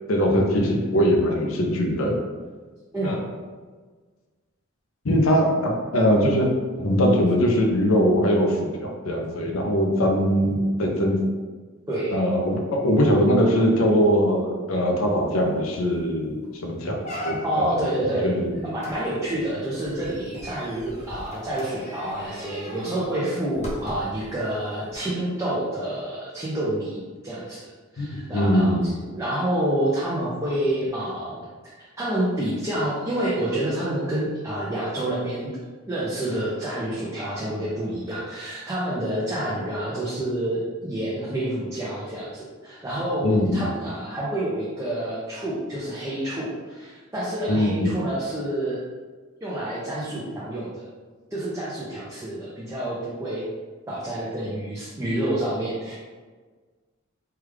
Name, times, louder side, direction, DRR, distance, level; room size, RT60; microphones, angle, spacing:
voice 1, 0.1-2.2 3.0-3.2 5.0-6.5 6.8-11.2 12.1-17.9 18.2-18.6 28.0-28.9 43.2-43.7 47.5-47.9, equal, 80° left, 2 dB, 0.6 m, -21 dB
sound 1, 15.3-15.4 15.7-16.0 16.4-16.5 17.0-17.8 18.8-24.3 24.9-25.0, left 1 dB, 35° left, 0.7 m, -38 dB
voice 2, 17.4-18.4 18.6-27.7 27.9-31.5 31.8-35.5 35.9-48.8 49.4-50.8 51.3-53.4 53.9-55.9, right 1 dB, 15° right, -8 dB, 0.5 m, -28 dB
3.4 x 2.3 x 3.1 m, 1.4 s
head